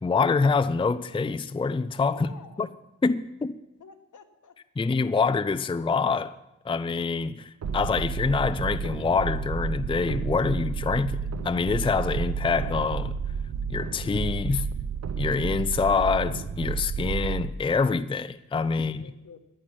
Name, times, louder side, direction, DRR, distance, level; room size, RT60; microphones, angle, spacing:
voice 1, 0.0-2.3 2.6-2.7 3.0-3.6 4.8-6.3 6.6-11.2 11.4-13.2 13.7-14.7 15.2-19.0, left 4 dB, 15° left, 0.4 m, -25 dB
voice 2, 2.1-2.7 3.8-4.6 18.7-19.4, left 5 dB, 75° left, 1.4 m, -50 dB
sound 1, 7.6-17.5, right 6 dB, 60° right, 0.8 m, -31 dB
15.0 x 10.0 x 7.5 m
wide cardioid pair, 175°, 31 cm